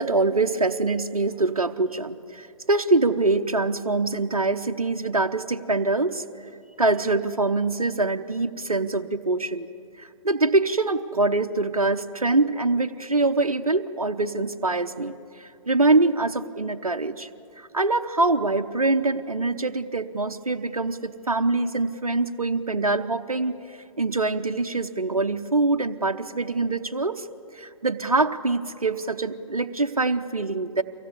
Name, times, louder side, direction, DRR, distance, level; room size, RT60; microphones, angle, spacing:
voice 1, 0.0-6.2 6.8-9.7 10.0-17.3 17.6-27.3 27.5-30.8, right 3 dB, 85° right, 7 dB, 0.9 m, -24 dB
24.5 x 17.0 x 8.2 m, 2.6 s
figure-of-eight pair, 125°, 18 cm